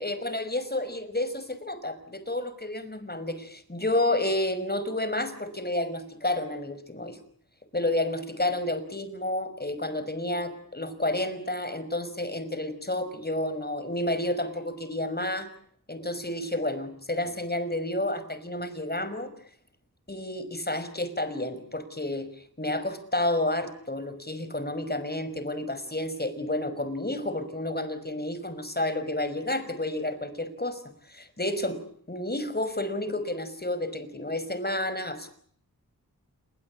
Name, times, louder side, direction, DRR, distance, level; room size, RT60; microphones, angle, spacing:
voice 1, 0.0-7.2 7.7-15.5 15.9-19.3 20.1-30.8 31.1-31.8 32.1-35.3, left 1 dB, 25° left, 12 dB, 5.8 m, -30 dB
28.5 x 22.5 x 8.6 m, 0.62 s
cardioid pair, 55°, 36 cm